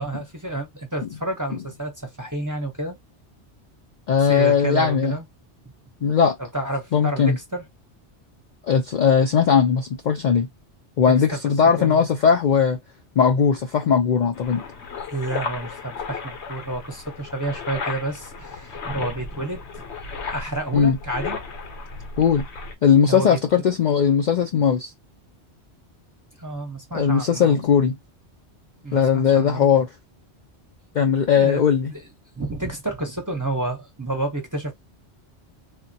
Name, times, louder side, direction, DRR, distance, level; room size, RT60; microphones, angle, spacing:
voice 1, 0.0-3.0 4.2-5.3 6.4-7.6 11.3-11.4 11.8-12.0 15.1-19.8 20.2-21.4 23.1-23.4 26.4-27.8 28.8-29.7 31.3-32.0 32.3-34.7, right 2 dB, 20° right, 0.7 m, -30 dB
voice 2, 4.1-5.2 6.0-6.3 6.9-7.4 8.6-10.5 11.0-12.8 13.2-14.6 20.7-21.0 22.2-22.5 22.8-24.9 26.9-28.0 28.9-29.9 30.9-31.9, left 7 dB, 55° left, 0.5 m, -18 dB
sound 1, 14.3-22.7, left 4 dB, 75° left, 1.0 m, -35 dB
3.5 x 2.1 x 2.6 m
omnidirectional pair, 1.2 m